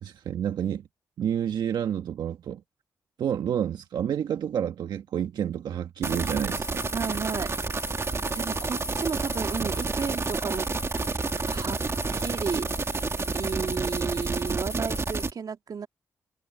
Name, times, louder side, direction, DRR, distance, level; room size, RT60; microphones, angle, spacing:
voice 1, 0.0-0.9 1.2-2.6 3.2-6.9 9.0-9.1 9.6-9.7, right 9 dB, 75° right, 1.4 m, -29 dB
sound 1, 6.0-15.3, right 3 dB, 35° right, 2.5 m, -29 dB
voice 2, 6.9-7.5 8.3-10.7 11.4-11.8 12.1-12.7 13.3-15.9, right 6 dB, 60° right, 2.3 m, -33 dB
supercardioid pair, 50°, 7 cm